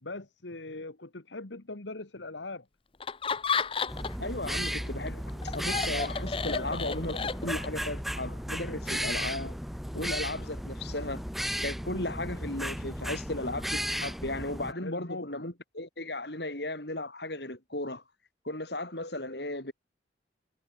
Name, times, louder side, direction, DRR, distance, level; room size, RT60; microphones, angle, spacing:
voice 1, 0.0-2.7 14.8-15.5, left 2 dB, 75° left, 1.9 m, -41 dB
Laughter, 3.0-4.3 4.6-7.8, left 5 dB, 30° left, 0.7 m, -32 dB
sound 1, 3.9-14.7, equal, ahead, 3.5 m, -35 dB
voice 2, 4.2-9.6 9.9-11.2 11.6-18.0 18.4-19.7, left 2 dB, 60° left, 5.7 m, -36 dB
head